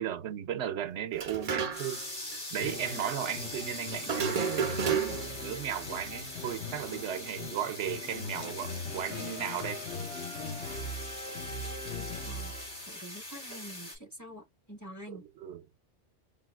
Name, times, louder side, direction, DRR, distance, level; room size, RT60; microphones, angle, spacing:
voice 1, 0.0-2.0 2.5-9.8 15.1-15.8, right 10 dB, 75° right, 0.9 m, -36 dB
sound 1, 1.1-2.1 2.3-2.4 4.0-5.4, right 7 dB, 45° right, 0.5 m, -31 dB
sound 2, 1.7-14.0, left 1 dB, 40° left, 2.6 m, -42 dB
sound 3, 2.6-13.0, left 3 dB, 60° left, 2.3 m, -41 dB
voice 2, 12.9-15.2, right 1 dB, 15° left, 1.0 m, -46 dB
5.3 x 2.6 x 2.3 m
omnidirectional pair, 1.2 m